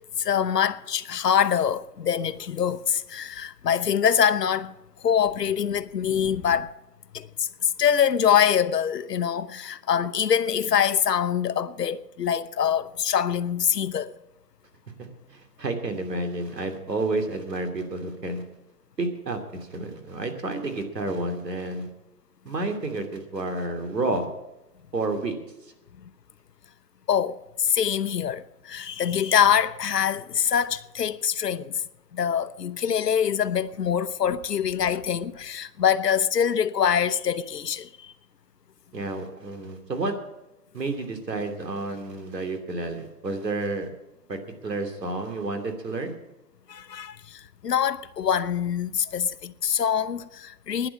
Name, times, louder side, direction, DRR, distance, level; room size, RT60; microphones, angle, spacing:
voice 1, 0.2-4.7 5.0-6.7 7.1-14.1 27.1-31.8 32.1-38.1 46.7-50.9, left 8 dB, 75° left, 0.9 m, -24 dB
voice 2, 15.0-18.4 19.0-21.9 22.4-24.3 24.9-25.3 38.9-40.1 40.7-43.9 44.3-46.2, right 2 dB, 90° right, 2.9 m, -30 dB
11.5 x 10.0 x 8.5 m
hypercardioid pair, 155°, 48 cm